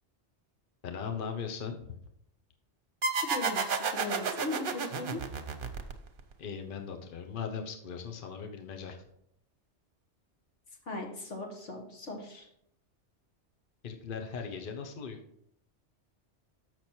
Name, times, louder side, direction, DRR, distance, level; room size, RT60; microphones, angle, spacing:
voice 1, 0.8-1.8 6.4-9.0 13.8-15.2, left 6 dB, 50° left, 3 dB, 1.0 m, -38 dB
sound 1, 3.0-6.3, right 4 dB, 55° right, 0.8 m, -32 dB
voice 2, 3.2-5.2 10.9-12.5, left 2 dB, 85° left, 1 dB, 1.9 m, -38 dB
7.0 x 6.1 x 4.4 m, 0.73 s
omnidirectional pair, 1.2 m